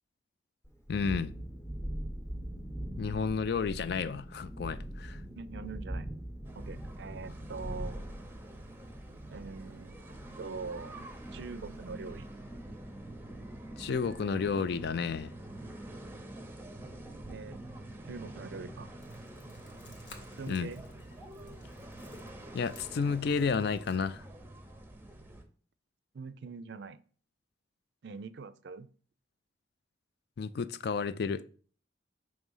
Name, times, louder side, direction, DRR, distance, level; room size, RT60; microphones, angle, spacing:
Thunderstorm, 0.6-12.2, right 1 dB, 15° left, 0.9 m, -42 dB
voice 1, 0.9-1.3 3.0-5.2 13.8-15.3 20.5-20.7 22.5-24.2 30.4-31.4, left 5 dB, 60° left, 0.3 m, -31 dB
voice 2, 5.3-6.1 6.6-8.0 9.3-10.0 10.4-12.3 17.3-17.6 18.1-18.9 20.2-20.8 26.1-27.0 28.0-28.9, right 4 dB, 60° right, 0.4 m, -43 dB
sound 1, 6.4-25.4, right 1 dB, 10° right, 0.7 m, -46 dB
sound 2, 19.0-24.0, left 3 dB, 80° left, 1.2 m, -57 dB
6.1 x 3.2 x 5.4 m
head